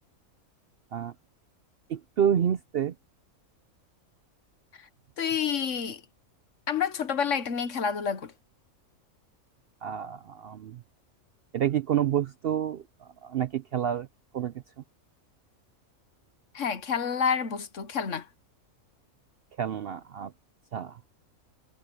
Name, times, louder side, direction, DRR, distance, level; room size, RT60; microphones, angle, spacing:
voice 1, 1.9-2.9 9.8-10.8 11.5-12.8 13.2-14.1 14.3-14.5 19.6-20.3 20.7-21.0, right 9 dB, 60° right, 0.6 m, -28 dB
voice 2, 5.2-6.0 6.7-8.3 16.5-18.3, left 7 dB, 60° left, 1.4 m, -28 dB
omnidirectional pair, 1.5 m